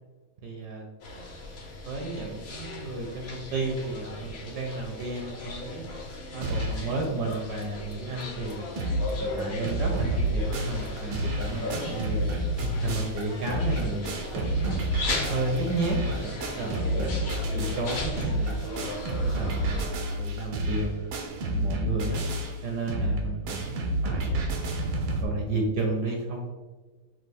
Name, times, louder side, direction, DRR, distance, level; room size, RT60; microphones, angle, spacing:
voice 1, 0.4-0.9 1.8-5.8 6.3-8.7 9.2-12.2 12.6-14.7 15.3-18.7 19.2-21.1 21.4-22.2 22.6-24.5 25.2-26.5, right 3 dB, 70° right, 1 dB, 1.0 m, -32 dB
sound 1, 1.0-19.8, left 2 dB, 70° left, 0.6 m, -37 dB
sound 2, 6.4-6.9 7.3-7.4 7.6-7.7 8.2-8.3 8.5-9.1 9.4-25.2, right 1 dB, 85° right, 1.5 m, -29 dB
6.2 x 2.4 x 3.4 m, 1.3 s
omnidirectional pair, 2.2 m